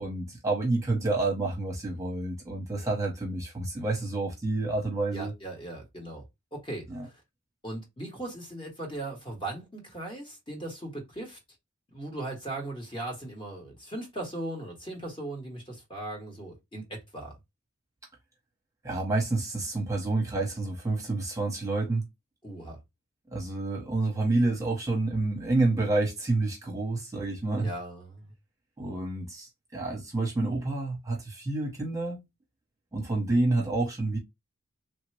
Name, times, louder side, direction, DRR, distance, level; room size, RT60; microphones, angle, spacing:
voice 1, 0.0-5.3 6.9-7.1 18.8-22.0 23.3-27.7 28.8-32.2 32.9-34.2, right 2 dB, 15° right, 0.9 m, -29 dB
voice 2, 5.1-6.3 6.5-7.1 7.6-11.4 11.9-17.4 22.4-22.8 27.6-28.3, right 1 dB, 25° left, 1.0 m, -38 dB
3.2 x 2.1 x 3.1 m
head